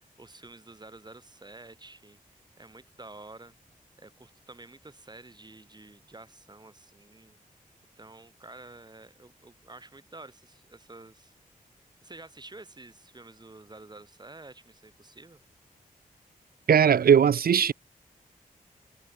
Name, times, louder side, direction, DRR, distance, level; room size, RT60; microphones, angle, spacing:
voice 1, 0.2-3.5 4.0-7.4 8.0-11.3 12.0-15.4, right 2 dB, 30° right, 7.8 m, -49 dB
voice 2, 16.7-17.7, right 8 dB, 85° right, 1.0 m, -19 dB
wide cardioid pair, 80°, 15 cm